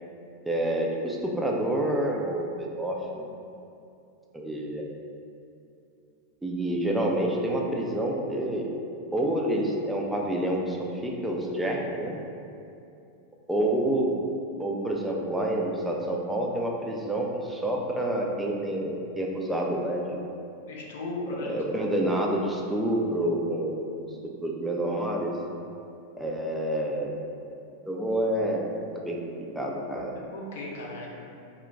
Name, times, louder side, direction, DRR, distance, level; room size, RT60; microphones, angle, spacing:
voice 1, 0.5-3.3 4.3-4.9 6.4-8.7 9.1-12.2 13.5-14.2 14.6-20.2 21.4-23.9 24.4-25.3 26.2-27.1 27.9-30.1, right 1 dB, 5° right, -1 dB, 0.4 m, -28 dB
voice 2, 20.7-21.9 30.3-31.1, left 2 dB, 55° left, -2 dB, 0.5 m, -36 dB
2.2 x 2.1 x 3.9 m, 2.6 s
figure-of-eight pair, 90°, 0 cm